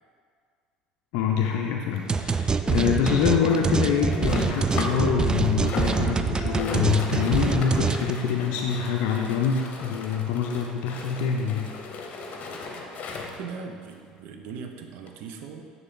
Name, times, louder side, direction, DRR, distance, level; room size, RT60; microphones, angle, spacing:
voice 1, 1.1-11.7 12.0-12.1, left 7 dB, 60° left, 2 dB, 0.4 m, -25 dB
sound 1, 2.1-8.1, right 5 dB, 20° right, 0.3 m, -25 dB
sound 2, 3.5-5.1 5.3-13.5 14.2-14.3 14.5-14.6 15.1-15.2, left 3 dB, 45° left, 0.8 m, -37 dB
voice 2, 13.4-15.7, right 5 dB, 60° right, 4 dB, 0.6 m, -39 dB
9.5 x 3.7 x 3.8 m, 2.1 s
figure-of-eight pair, 65°, 4 cm